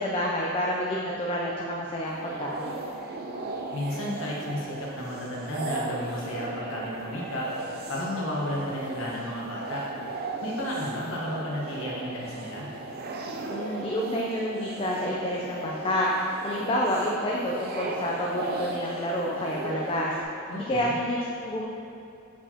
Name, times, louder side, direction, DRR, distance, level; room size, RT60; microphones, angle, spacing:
voice 1, 0.0-2.7 13.5-16.1 16.4-20.1 20.7-21.7, left 1 dB, 25° left, -3 dB, 0.4 m, -29 dB
sound 1, 2.0-20.2, right 2 dB, 45° right, 0.5 m, -36 dB
voice 2, 3.7-7.5 7.9-9.8 10.4-12.6 20.5-20.9, left 1 dB, 65° left, -4 dB, 1.2 m, -33 dB
7.4 x 4.8 x 2.8 m, 2.7 s
head